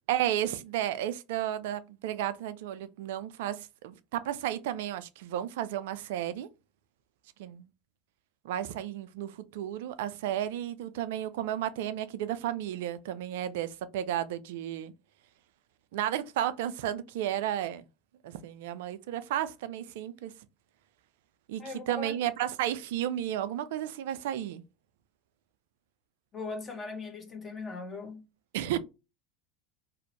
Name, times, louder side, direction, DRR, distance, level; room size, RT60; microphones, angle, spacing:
voice 1, 0.1-6.5 7.4-7.7 8.4-14.9 15.9-17.8 18.2-20.3 21.5-24.6 28.5-28.8, right 11 dB, 70° right, 0.3 m, -33 dB
voice 2, 21.6-22.2 26.3-28.2, left 3 dB, 30° left, 0.9 m, -39 dB
2.5 x 2.0 x 2.9 m
hypercardioid pair, 80°, 0 cm